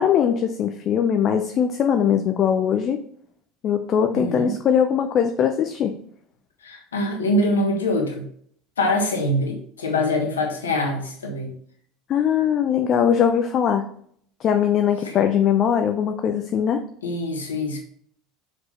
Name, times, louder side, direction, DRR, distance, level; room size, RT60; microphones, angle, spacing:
voice 1, 0.0-3.0 3.6-6.0 12.1-13.9 14.4-16.8, left 8 dB, 40° left, 6 dB, 0.6 m, -21 dB
voice 2, 4.1-4.6 6.6-8.2 8.8-11.5 15.0-15.1 17.0-17.8, left 1 dB, 75° left, 2 dB, 1.3 m, -24 dB
6.1 x 5.1 x 4.1 m, 0.62 s
figure-of-eight pair, 70°, 0 cm